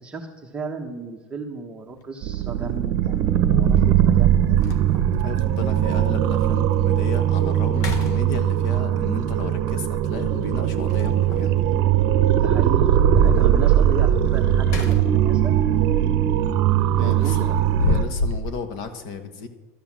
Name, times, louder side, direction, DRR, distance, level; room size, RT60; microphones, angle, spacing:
voice 1, 0.0-3.2 3.5-4.6 12.3-15.6 17.0-17.5, right 3 dB, 10° right, 0 dB, 1.0 m, -34 dB
sound 1, 1.9-2.0 3.8-3.9 4.3-4.4 4.6-5.2 5.8-5.9 6.4-6.5 6.9-7.3 7.7-8.8 10.9-11.5 14.3-15.3 15.7-15.9 17.2-18.5, left 3 dB, 75° left, 1.4 m, -28 dB
sound 2, 2.2-18.0, right 10 dB, 50° right, 0.8 m, -20 dB
voice 2, 5.2-11.6 13.4-13.5 17.0-19.5, left 5 dB, 55° left, 8 dB, 1.5 m, -34 dB
12.5 x 7.8 x 7.4 m, 1.2 s
supercardioid pair, 155°, 8 cm